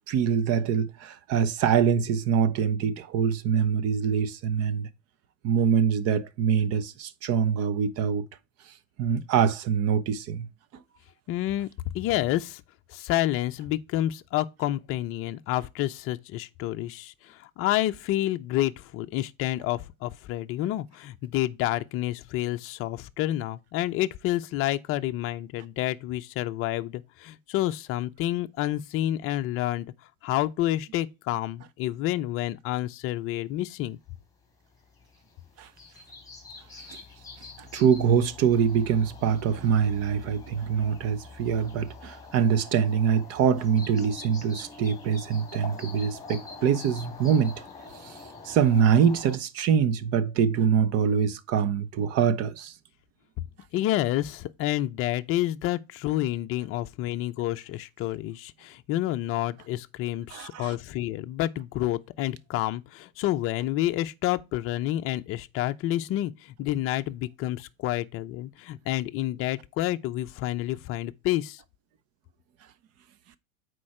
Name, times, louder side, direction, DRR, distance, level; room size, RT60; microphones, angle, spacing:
voice 1, 0.1-4.9 5.4-8.3 9.0-10.5 10.7-10.8 35.6-35.7 36.9-37.0 37.6-47.6 48.0-48.2 48.4-52.7 60.3-60.7, right 7 dB, 35° right, 0.9 m, -24 dB
voice 2, 11.3-11.7 11.9-12.6 12.9-29.9 30.2-34.0 53.7-71.6, left 14 dB, 35° left, 0.6 m, -29 dB
sound 1, 34.7-49.4, left 4 dB, 10° left, 3.6 m, -45 dB
8.4 x 4.6 x 4.3 m
hypercardioid pair, 115°, 40 cm